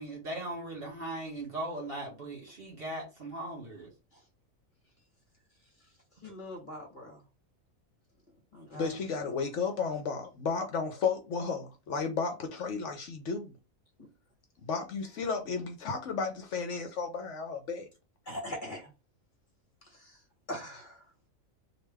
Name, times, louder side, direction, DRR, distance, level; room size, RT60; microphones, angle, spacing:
voice 1, 0.0-3.9, right 1 dB, 45° right, 1.8 m, -38 dB
voice 2, 6.2-7.2 8.5-9.0 9.2-9.4 14.0-14.1 18.3-18.9 19.8-20.2 20.5-21.0, left 1 dB, 40° left, 1.1 m, -42 dB
voice 3, 8.7-13.5 14.6-17.9, left 5 dB, 65° left, 0.9 m, -33 dB
3.2 x 2.5 x 3.3 m
omnidirectional pair, 1.4 m